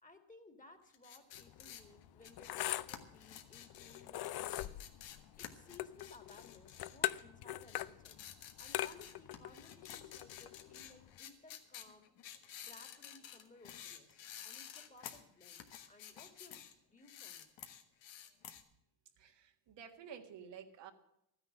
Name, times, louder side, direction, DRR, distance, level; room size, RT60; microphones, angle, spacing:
voice 1, 0.0-4.8 5.4-12.1 12.6-17.5, left 2 dB, 20° left, 7 dB, 2.0 m, -60 dB
sound 1, 0.9-7.3 7.6-16.7 17.0-18.6, left 10 dB, 80° left, 1.5 m, -52 dB
sound 2, 1.3-11.2, left 14 dB, 60° left, 0.6 m, -42 dB
voice 2, 19.2-20.9, right 7 dB, 75° right, 4 dB, 1.8 m, -52 dB
13.0 x 10.0 x 7.5 m, 0.80 s
cardioid pair, 95°, 44 cm